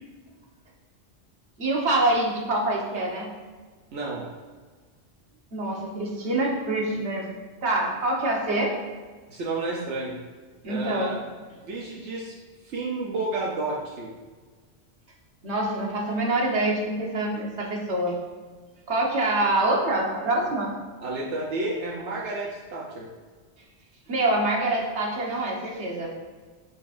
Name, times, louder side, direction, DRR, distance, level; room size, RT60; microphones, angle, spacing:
voice 1, 1.6-3.3 5.5-7.3 7.6-8.7 10.6-11.2 15.4-18.1 18.9-20.7 24.1-26.1, right 2 dB, 75° right, -2 dB, 1.5 m, -25 dB
voice 2, 3.9-4.3 9.3-10.2 10.7-11.2 11.6-12.3 12.6-14.1 21.0-23.1, right 2 dB, 90° right, -3 dB, 1.1 m, -31 dB
10.5 x 4.1 x 2.5 m, 1.5 s
omnidirectional pair, 1.2 m